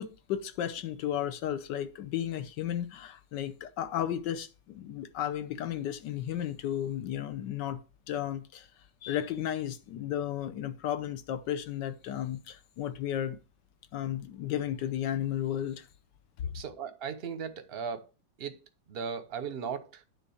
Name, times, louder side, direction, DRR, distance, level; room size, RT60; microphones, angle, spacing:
voice 1, 0.0-7.8 8.1-8.7 9.0-13.4 13.9-15.9, left 11 dB, 75° left, 1.4 m, -34 dB
voice 2, 16.4-18.1 18.4-18.6 18.9-20.0, right 6 dB, 50° right, 0.7 m, -37 dB
9.7 x 3.9 x 6.9 m
omnidirectional pair, 1.9 m